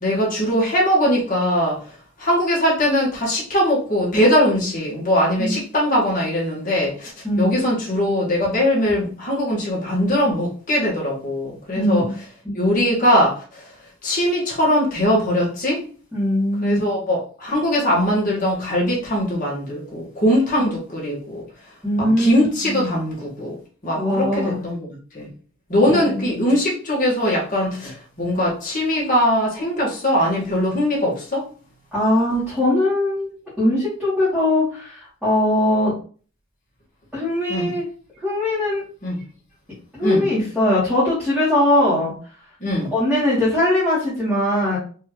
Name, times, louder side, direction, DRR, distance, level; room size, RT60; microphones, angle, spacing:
voice 1, 0.0-1.8 2.2-7.1 7.4-12.0 12.5-13.4 14.0-15.8 16.6-21.4 22.0-23.6 23.8-24.8 25.1-25.3 25.7-31.4 37.5-37.7 39.0-39.2 40.0-40.3 42.6-42.9, equal, 35° left, -5 dB, 1.7 m, -21 dB
voice 2, 7.2-7.6 11.7-12.1 12.4-12.5 16.1-16.8 20.6-20.7 21.8-22.9 23.9-24.6 25.9-26.5 31.9-33.3 33.6-35.9 37.1-37.8 38.2-38.8 39.9-42.1 42.9-44.8, left 1 dB, ahead, -11 dB, 1.6 m, -20 dB
4.4 x 2.9 x 3.0 m, 0.40 s
head